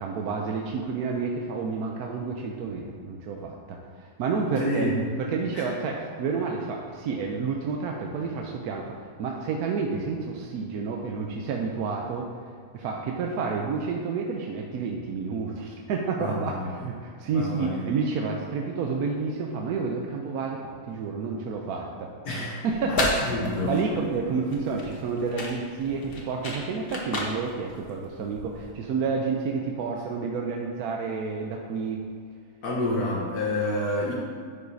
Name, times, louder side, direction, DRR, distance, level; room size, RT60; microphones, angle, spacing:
voice 1, 0.0-12.3 12.7-22.1 22.6-32.0, right 4 dB, 70° right, 1 dB, 1.0 m, -30 dB
voice 2, 4.6-5.0 5.5-5.6 16.2-16.8 17.3-17.9 22.2-22.6 22.9-23.0 23.3-23.8 32.6-34.1, left 1 dB, 70° left, -5 dB, 1.5 m, -28 dB
sound 1, 22.7-28.7, left 2 dB, 40° left, 1.1 m, -33 dB
11.0 x 4.8 x 2.7 m, 2.2 s
omnidirectional pair, 1.7 m